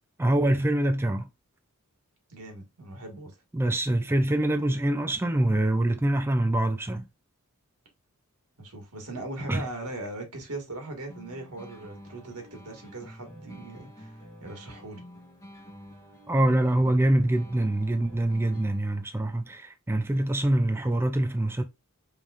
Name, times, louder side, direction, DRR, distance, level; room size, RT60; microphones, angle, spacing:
voice 1, 0.2-1.3 3.5-7.1 9.5-9.6 16.3-21.6, right 1 dB, 10° right, 0.4 m, -25 dB
voice 2, 2.3-3.3 8.6-15.0, right 2 dB, 85° right, 1.8 m, -39 dB
sound 1, 11.1-19.1, equal, 15° left, 1.5 m, -48 dB
5.4 x 3.3 x 2.5 m
head